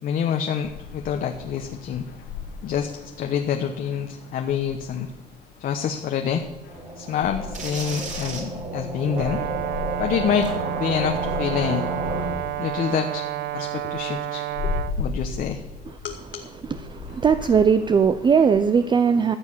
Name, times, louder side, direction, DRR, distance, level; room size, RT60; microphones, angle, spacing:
voice 1, 0.0-2.0 2.6-5.1 5.6-6.5 7.0-9.4 10.0-11.8 12.6-13.3 13.5-15.6 16.0-16.4, left 8 dB, 55° left, 5 dB, 1.0 m, -27 dB
sound 1, 0.6-18.6, left 4 dB, 90° left, 2.1 m, -38 dB
sound 2, 6.7-12.3, right 2 dB, 45° right, 3.5 m, -32 dB
Brass instrument, 9.1-15.0, right 14 dB, 75° right, 0.6 m, -30 dB
voice 2, 16.8-19.4, right 6 dB, 25° right, 11 dB, 0.5 m, -19 dB
14.0 x 7.3 x 7.3 m, 1.0 s
cardioid pair, 110°, 17 cm